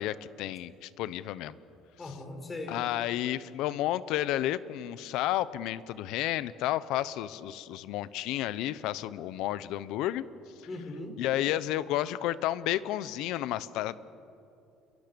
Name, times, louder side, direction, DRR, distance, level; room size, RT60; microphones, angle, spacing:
voice 1, 0.0-1.5 2.7-10.3 11.2-13.9, left 13 dB, 75° left, 16 dB, 0.9 m, -31 dB
voice 2, 2.0-2.8 10.7-11.2, left 2 dB, 20° left, 4 dB, 4.7 m, -39 dB
28.5 x 22.5 x 7.0 m, 2.7 s
cardioid pair, 130°, 0 cm